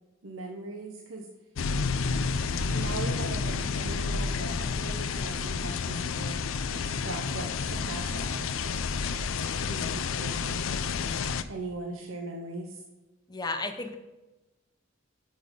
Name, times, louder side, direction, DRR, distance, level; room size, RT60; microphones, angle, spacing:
voice 1, 0.2-1.3 2.7-6.4 6.7-8.7 9.7-10.7 11.5-12.8, right 2 dB, 80° right, 1 dB, 1.0 m, -39 dB
sound 1, 1.6-11.4, left 5 dB, 75° left, 0.5 m, -30 dB
voice 2, 13.3-13.9, left 3 dB, 20° left, 6 dB, 0.8 m, -33 dB
8.0 x 6.7 x 5.3 m, 1.0 s
head